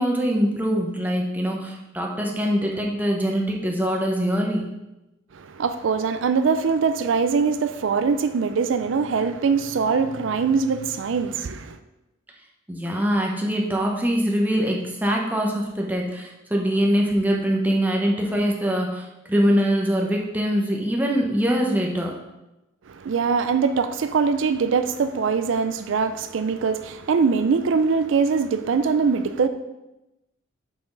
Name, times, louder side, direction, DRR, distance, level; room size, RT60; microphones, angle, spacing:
voice 1, 0.0-4.7 12.7-22.1, equal, 10° right, 0.9 m, -23 dB
voice 2, 5.3-11.8 22.9-29.5, right 5 dB, 85° right, 0.4 m, -22 dB
6.0 x 5.9 x 3.9 m
head